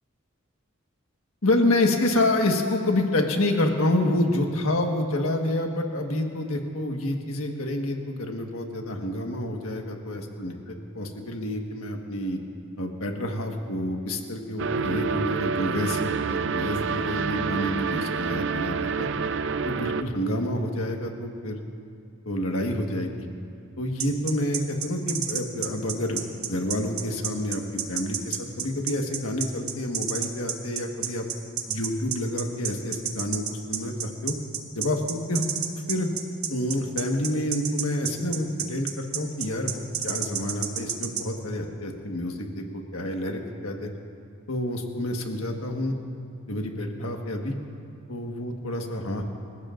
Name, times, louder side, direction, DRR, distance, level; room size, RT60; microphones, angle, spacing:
voice 1, 1.4-10.6 10.9-12.4 12.8-19.1 19.6-21.6 22.2-23.1 23.8-26.2 26.5-27.6 27.9-31.2 31.7-34.3 34.7-35.4 35.9-36.1 36.5-43.9 44.5-45.9 46.5-47.5 48.1-49.2, left 1 dB, 80° left, 2 dB, 1.5 m, -28 dB
sound 1, 14.6-20.0, right 5 dB, 60° right, 0.5 m, -28 dB
sound 2, 24.0-41.2, right 9 dB, 85° right, 1.2 m, -30 dB
27.0 x 15.0 x 2.5 m, 2.4 s
head